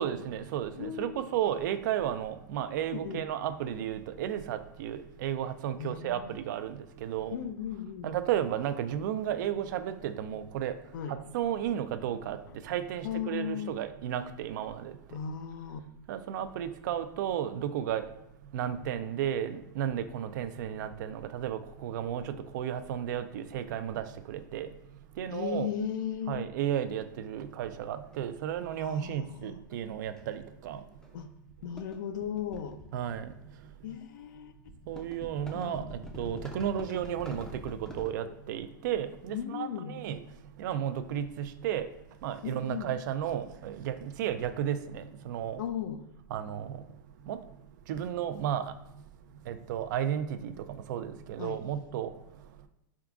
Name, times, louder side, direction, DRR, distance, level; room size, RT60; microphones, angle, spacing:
voice 1, 0.0-7.4 8.0-10.8 11.1-12.4 12.6-15.0 16.1-18.0 18.5-24.7 25.2-25.7 26.3-30.8 32.9-33.3 34.9-40.2 40.6-41.9 42.2-45.6 46.3-46.8 47.3-47.4 47.9-48.7 49.5-52.1, right 10 dB, 60° right, 0.4 m, -33 dB
voice 2, 0.7-1.2 2.9-3.3 5.8-6.4 7.3-8.2 10.9-11.2 13.0-13.8 15.1-15.8 25.3-26.4 28.8-29.6 31.1-31.3 31.6-32.8 33.8-34.5 35.5-35.9 39.3-40.0 42.4-42.9 45.6-46.0 51.4-51.6, left 8 dB, 65° left, 0.4 m, -36 dB
sound 1, 28.1-28.2 29.7-29.9 30.2-30.4 31.0-31.2 31.5-33.6 34.7-38.1, equal, 5° left, 0.4 m, -45 dB
3.7 x 3.6 x 2.3 m
hypercardioid pair, 130°, 11 cm